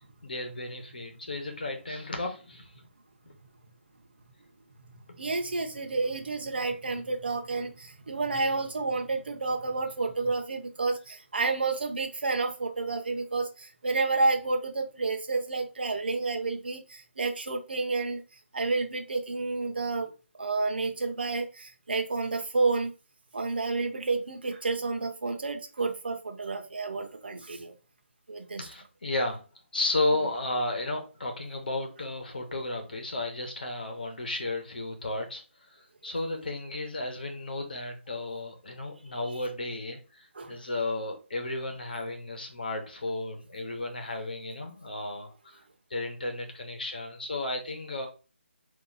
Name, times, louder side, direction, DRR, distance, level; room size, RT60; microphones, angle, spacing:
voice 1, 0.2-2.7 3.2-3.3 28.6-29.5 29.7-35.4 35.7-45.6 45.9-48.1, left 2 dB, 45° left, 1.1 m, -33 dB
voice 2, 5.2-18.2 18.5-20.1 20.4-22.9 23.3-27.7 28.3-28.6 40.4-40.5, right 3 dB, 50° right, 0.8 m, -30 dB
4.5 x 2.8 x 4.0 m
hypercardioid pair, 180°, 7 cm